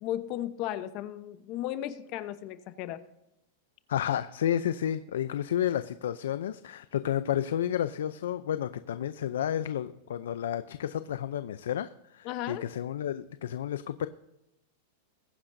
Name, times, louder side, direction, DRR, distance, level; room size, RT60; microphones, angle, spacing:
voice 1, 0.0-3.0 12.2-12.6, left 13 dB, 40° left, 12 dB, 0.9 m, -35 dB
voice 2, 3.9-14.1, left 10 dB, 85° left, 13 dB, 0.5 m, -31 dB
21.0 x 10.0 x 2.7 m, 0.91 s
supercardioid pair, 150°, 0 cm